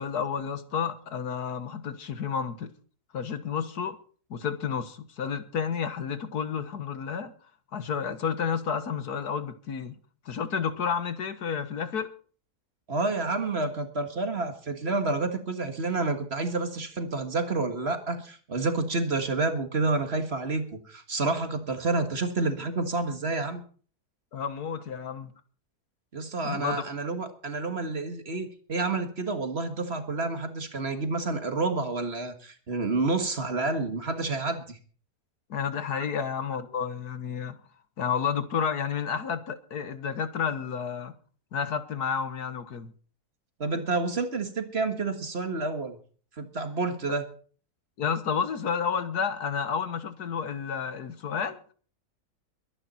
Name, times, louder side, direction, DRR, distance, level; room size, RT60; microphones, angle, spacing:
voice 1, 0.0-2.7 3.1-4.0 4.3-7.3 7.7-10.0 10.3-12.1 24.3-25.3 26.4-26.9 35.5-37.6 38.0-41.1 41.5-42.9 48.0-51.6, left 7 dB, 80° left, 1.8 m, -31 dB
voice 2, 12.9-23.6 26.1-34.8 43.6-46.0 46.4-47.3, right 3 dB, 40° right, 1.8 m, -29 dB
22.5 x 10.0 x 4.3 m
omnidirectional pair, 1.7 m